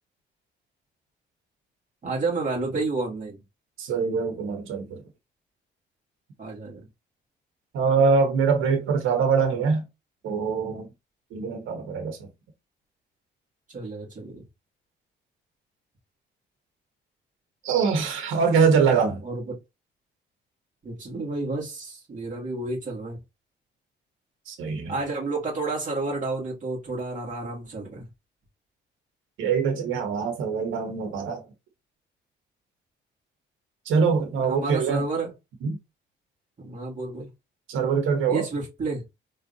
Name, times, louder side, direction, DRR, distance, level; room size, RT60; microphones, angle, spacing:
voice 1, 2.0-3.4 6.4-6.9 13.7-14.4 19.2-19.6 20.8-23.2 24.9-28.1 34.5-35.3 36.6-37.3 38.3-39.0, right 3 dB, 40° right, 2.5 m, -30 dB
voice 2, 3.8-5.0 7.7-9.8 10.2-10.9 11.3-12.2 17.6-19.2 24.5-24.9 29.4-31.4 33.9-35.0 35.6-35.7 37.7-38.4, right 5 dB, 85° right, 1.3 m, -23 dB
4.4 x 3.5 x 2.8 m
cardioid pair, 90°, 20 cm